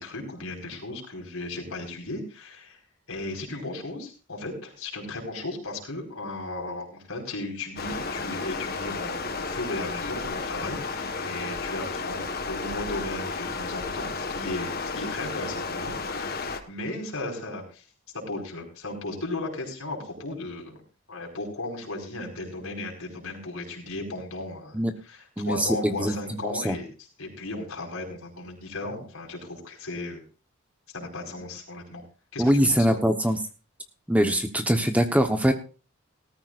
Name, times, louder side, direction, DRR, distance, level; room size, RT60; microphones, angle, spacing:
voice 1, 0.0-2.8 3.1-17.8 18.3-20.8 21.1-24.8 25.0-26.9 27.2-30.2 30.9-32.0 32.3-33.0, left 2 dB, 80° left, 0 dB, 4.8 m, -35 dB
Stream, 7.8-16.6, left 4 dB, 45° left, 1.4 m, -32 dB
voice 2, 25.4-26.8 32.4-33.4 34.1-35.5, equal, 5° right, 6 dB, 1.1 m, -23 dB
18.0 x 14.0 x 2.5 m, 0.36 s
head